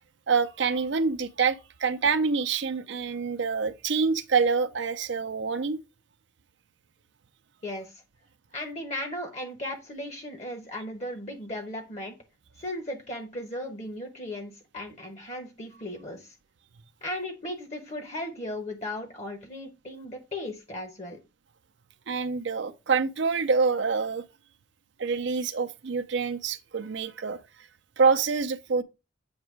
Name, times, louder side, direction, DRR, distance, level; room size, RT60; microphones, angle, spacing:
voice 1, 0.3-5.8 22.1-24.2 25.0-27.4 28.0-28.8, right 5 dB, 70° right, 0.6 m, -26 dB
voice 2, 7.6-7.9 8.5-12.1 12.6-16.3 17.0-21.2, left 1 dB, 35° left, 1.0 m, -36 dB
8.1 x 2.9 x 4.6 m
head